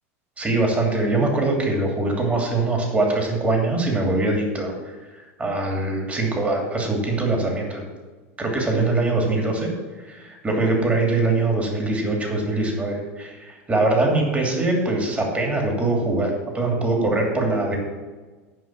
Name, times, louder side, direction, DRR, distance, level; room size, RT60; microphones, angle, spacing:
voice 1, 0.4-7.8 8.4-9.7 10.0-17.8, right 2 dB, 20° right, 1 dB, 2.7 m, -23 dB
9.4 x 5.7 x 7.2 m, 1.3 s
hypercardioid pair, 110°, 8 cm